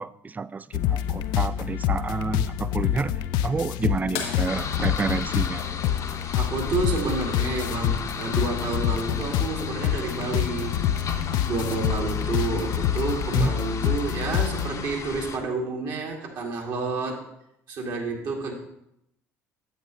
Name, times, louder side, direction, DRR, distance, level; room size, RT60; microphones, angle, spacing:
voice 1, 0.0-3.1 3.4-5.9 13.4-13.5, right 4 dB, 20° right, 17 dB, 0.4 m, -29 dB
sound 1, 0.7-14.7, left 11 dB, 65° left, 0.4 m, -27 dB
sound 2, 4.1-6.6 8.5-8.6 10.9-11.0 12.7-12.9 13.7-13.8, left 6 dB, 80° left, 1.8 m, -37 dB
sound 3, 4.5-15.4, left 5 dB, 45° left, 0.8 m, -34 dB
voice 2, 6.3-10.8 11.5-17.2 17.7-18.5, right 3 dB, 60° right, 0 dB, 2.2 m, -29 dB
9.6 x 8.3 x 3.1 m, 0.80 s
hypercardioid pair, 60°, 8 cm